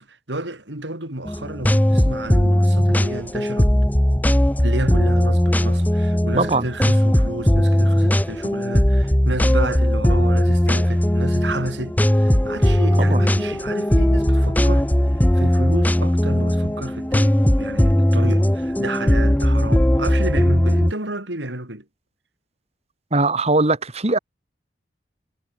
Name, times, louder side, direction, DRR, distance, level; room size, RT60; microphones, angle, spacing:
voice 1, 0.0-3.7 4.6-21.8, right 1 dB, 85° right, 6.6 m, -31 dB
sound 1, 1.3-20.9, equal, 10° left, 0.8 m, -18 dB
voice 2, 6.4-6.7 13.0-13.2 23.1-24.2, right 2 dB, 35° right, 2.0 m, -20 dB
head